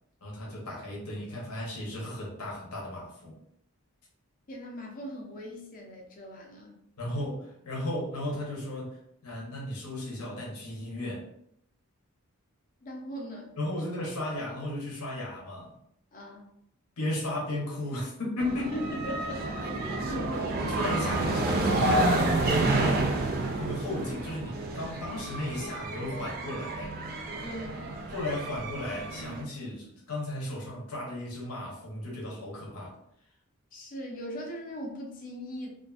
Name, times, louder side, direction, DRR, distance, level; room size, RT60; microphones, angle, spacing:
voice 1, 0.2-3.4 7.0-11.3 13.6-15.7 17.0-18.7 20.6-23.0 23.6-27.0 28.1-33.0, left 1 dB, 90° left, -3 dB, 0.8 m, -35 dB
voice 2, 4.5-6.8 12.8-13.5 16.1-16.5 18.7-19.5 19.8-20.5 27.4-27.9 33.7-35.7, equal, 35° left, -1 dB, 0.5 m, -39 dB
sound 1, 18.4-29.4, right 2 dB, 40° right, 0.3 m, -29 dB
2.5 x 2.4 x 2.4 m, 0.74 s
head